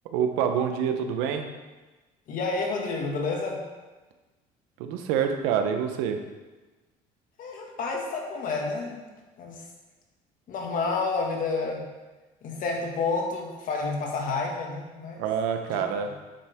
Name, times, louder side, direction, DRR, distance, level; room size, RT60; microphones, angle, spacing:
voice 1, 0.0-1.5 4.8-6.2 15.2-16.1, right 8 dB, 90° right, 6 dB, 1.0 m, -26 dB
voice 2, 2.3-3.7 7.4-9.0 9.4-9.6 10.5-11.9 12.4-15.2 15.7-15.8, left 4 dB, 55° left, 0 dB, 2.0 m, -30 dB
8.8 x 7.7 x 3.7 m, 1.2 s
cardioid pair, 105°, 16 cm